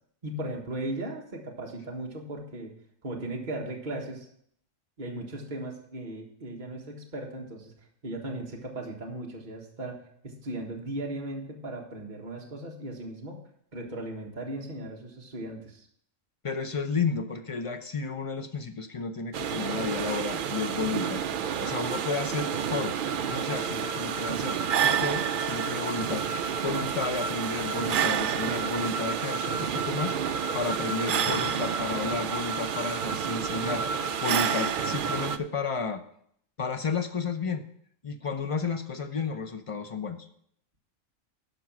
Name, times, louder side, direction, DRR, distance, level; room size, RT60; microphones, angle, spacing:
voice 1, 0.2-2.7 3.0-4.3 5.0-7.7 8.0-10.0 10.2-13.4 13.7-15.9, right 1 dB, 35° right, 0 dB, 1.7 m, -37 dB
voice 2, 16.4-21.2 21.6-22.9 23.3-30.2 30.5-36.0 36.6-37.7 38.0-40.3, left 4 dB, 35° left, 7 dB, 0.6 m, -32 dB
sound 1, 19.3-35.4, right 7 dB, 60° right, 0.5 m, -29 dB
12.0 x 5.3 x 6.0 m, 0.68 s
omnidirectional pair, 1.4 m